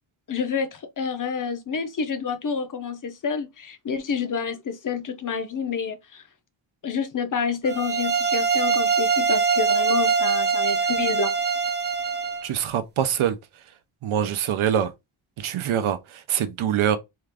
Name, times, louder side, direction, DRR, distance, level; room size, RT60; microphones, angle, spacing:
voice 1, 0.3-6.2 6.8-11.3, left 6 dB, 40° left, 0.5 m, -28 dB
sound 1, 7.7-12.5, right 5 dB, 25° right, 0.3 m, -23 dB
voice 2, 12.4-13.4 14.0-14.9 15.4-17.0, right 9 dB, 80° right, 0.6 m, -24 dB
2.8 x 2.4 x 3.3 m
wide cardioid pair, 120°, 48 cm